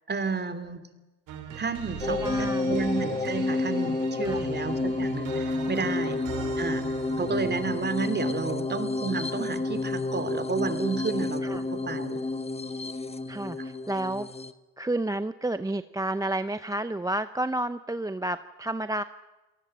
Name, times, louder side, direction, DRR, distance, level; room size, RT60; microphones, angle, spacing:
voice 1, 0.1-0.9 1.6-6.2 6.6-6.8 7.2-11.4 11.9-12.2 13.6-13.7, right 4 dB, 35° right, 11 dB, 2.8 m, -31 dB
sound 1, 1.3-8.0, right 7 dB, 85° right, 4.0 m, -40 dB
sound 2, 2.0-14.5, left 3 dB, 20° left, 1.2 m, -30 dB
voice 2, 2.0-2.9 4.2-4.5 6.4-6.5 11.4-11.6 13.3-14.3 14.8-19.0, right 1 dB, 10° right, 11 dB, 0.7 m, -31 dB
28.0 x 19.0 x 7.6 m, 1.1 s
cardioid pair, 90°, 30 cm